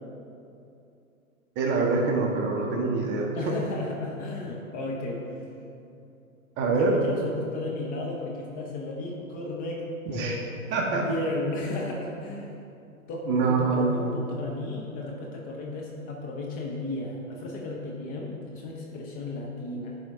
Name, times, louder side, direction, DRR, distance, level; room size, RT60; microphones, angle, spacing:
voice 1, 1.6-3.3 6.6-7.0 10.1-10.4 10.7-11.1 13.3-14.2, right 4 dB, 25° right, 1 dB, 0.9 m, -25 dB
voice 2, 3.3-5.6 6.8-12.5 13.0-20.0, left 2 dB, 20° left, -1 dB, 0.6 m, -34 dB
11.0 x 4.4 x 3.6 m, 2.6 s
hypercardioid pair, 120°, 42 cm